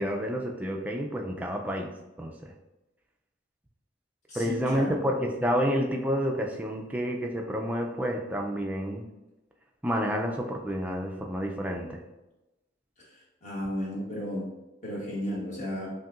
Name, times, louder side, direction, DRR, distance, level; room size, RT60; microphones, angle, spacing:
voice 1, 0.0-1.9 2.2-2.5 4.3-9.1 9.8-12.0, equal, 10° right, 1 dB, 0.3 m, -29 dB
voice 2, 4.3-5.0 13.4-14.4 14.8-15.9, equal, 40° left, -5 dB, 1.2 m, -33 dB
5.6 x 2.6 x 2.4 m, 1.0 s
head